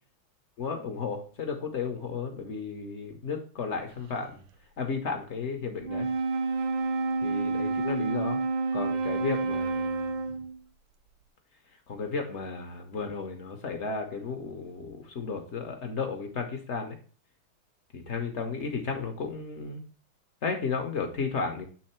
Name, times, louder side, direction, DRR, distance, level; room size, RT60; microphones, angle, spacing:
voice 1, 0.6-4.4 4.8-6.1 7.2-8.4 8.7-10.3 11.9-17.0 17.9-19.8 20.4-21.6, left 5 dB, 60° left, 4 dB, 0.7 m, -33 dB
Wind instrument woodwind instrument, 5.8-10.6, right 3 dB, 75° right, 1.2 m, -29 dB
7.5 x 3.5 x 4.3 m, 0.41 s
omnidirectional pair, 2.2 m